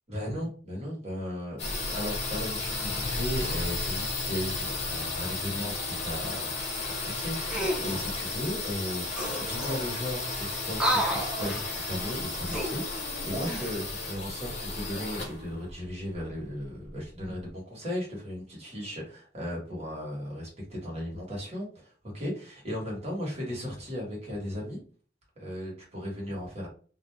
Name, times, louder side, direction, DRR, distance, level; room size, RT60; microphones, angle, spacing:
voice 1, 0.1-6.8 7.0-24.8 25.4-26.7, equal, 35° right, -4 dB, 1.3 m, -36 dB
sound 1, 1.6-17.2, left 3 dB, 35° left, 0.7 m, -33 dB
sound 2, 7.5-8.0 8.9-9.0 9.1-10.0 10.7-11.7 12.4-13.8 14.3-14.5, equal, 5° right, 0.5 m, -31 dB
2.6 x 2.2 x 3.2 m, 0.42 s
head